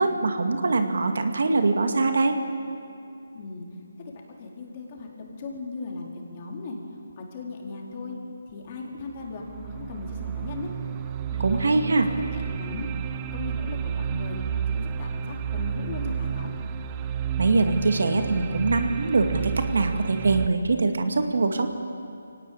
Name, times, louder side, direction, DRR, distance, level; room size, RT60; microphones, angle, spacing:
voice 1, 0.0-2.4 11.4-12.1 17.4-21.7, right 3 dB, 65° right, 6 dB, 2.1 m, -23 dB
voice 2, 3.3-6.8 7.2-8.2 8.5-10.7 11.3-12.9 13.3-14.4 14.7-16.5, left 3 dB, 35° left, -1 dB, 4.1 m, -37 dB
sound 1, 8.5-8.6 9.1-20.5, right 8 dB, 20° right, 0.8 m, -31 dB
23.5 x 18.5 x 8.7 m, 2.5 s
figure-of-eight pair, 155°, 0 cm